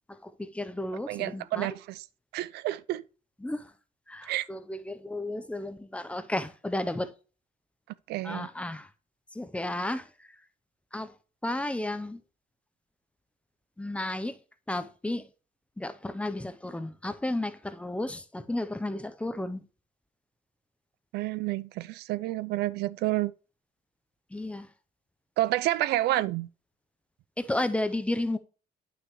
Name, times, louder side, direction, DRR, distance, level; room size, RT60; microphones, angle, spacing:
voice 1, 0.2-1.7 3.4-3.6 4.1-7.1 8.2-8.9 9.4-10.0 10.9-11.1 11.4-12.2 13.8-14.3 14.7-15.3 15.8-19.6 24.3-24.7 27.4-28.4, left 1 dB, 5° left, 0.6 m, -33 dB
voice 2, 1.1-2.0 2.3-3.0 4.3-4.4 8.1-8.5 21.1-23.3 25.4-26.5, right 16 dB, 75° right, 0.4 m, -29 dB
9.5 x 5.9 x 3.0 m
cardioid pair, 110°, 17 cm